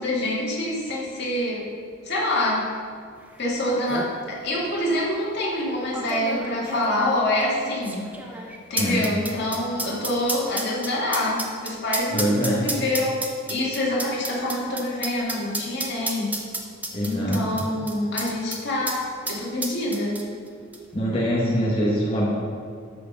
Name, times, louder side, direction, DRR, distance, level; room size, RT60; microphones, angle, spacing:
voice 1, 0.0-1.7 2.0-2.7 3.4-8.1 8.7-16.4 17.0-20.3, left 1 dB, 60° left, -4 dB, 2.2 m, -26 dB
sound 1, 3.4-3.5 3.7-4.1 4.9-5.0 5.9-18.6 18.9-19.0 19.3-20.5 20.7-20.8, right 2 dB, 10° right, 0.8 m, -31 dB
voice 2, 12.1-12.6 16.9-17.4 20.9-22.3, equal, 30° left, -6 dB, 1.5 m, -23 dB
13.0 x 4.4 x 5.4 m, 2.2 s
head